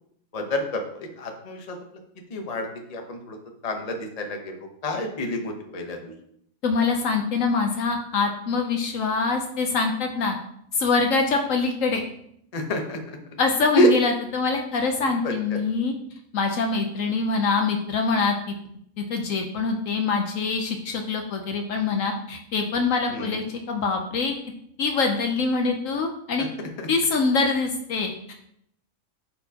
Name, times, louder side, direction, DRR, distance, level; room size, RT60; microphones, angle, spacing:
voice 1, 0.3-1.8 2.3-3.4 3.6-4.5 4.8-6.0 12.5-13.2 13.7-13.9 15.2-15.6 23.1-23.4 26.4-26.5 26.8-26.9, left 1 dB, 30° left, 3 dB, 0.9 m, -28 dB
voice 2, 6.6-10.4 10.7-12.0 13.4-15.9 16.3-18.5 19.0-24.3 24.8-26.5 26.9-28.3, left 4 dB, 70° left, 4 dB, 1.0 m, -24 dB
9.5 x 4.4 x 2.8 m, 0.72 s
omnidirectional pair, 1.5 m